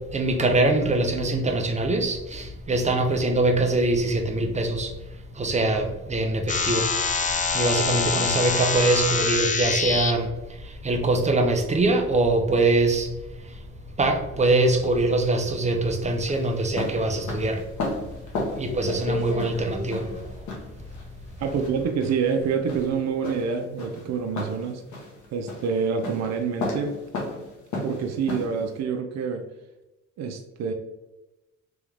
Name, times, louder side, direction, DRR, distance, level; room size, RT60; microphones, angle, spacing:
voice 1, 0.1-4.9 5.4-6.8 7.5-10.3 10.8-13.1 14.0-17.6 18.6-20.0, right 2 dB, 25° right, 4 dB, 0.7 m, -23 dB
sound 1, 6.5-10.1, left 5 dB, 25° left, 0.5 m, -25 dB
sound 2, 14.4-28.8, left 2 dB, 70° left, 1.4 m, -34 dB
voice 2, 21.4-24.8 25.3-27.0 27.7-29.5 30.2-30.7, right 6 dB, 60° right, 4 dB, 0.6 m, -27 dB
3.5 x 3.0 x 3.4 m, 1.0 s
cardioid pair, 90°, 30 cm